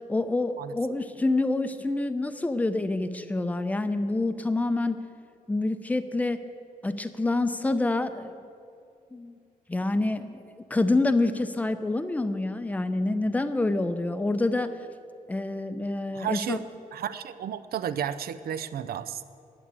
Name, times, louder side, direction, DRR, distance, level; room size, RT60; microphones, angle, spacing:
voice 1, 0.1-5.0 5.5-6.4 6.8-8.4 9.1-9.3 9.7-10.4 10.7-14.7 15.3-16.6, left 2 dB, 10° left, 10 dB, 0.5 m, -27 dB
voice 2, 16.1-16.6 16.9-19.2, right 9 dB, 90° right, 13 dB, 0.5 m, -32 dB
11.0 x 8.6 x 8.3 m, 2.5 s
wide cardioid pair, 170°, 15 cm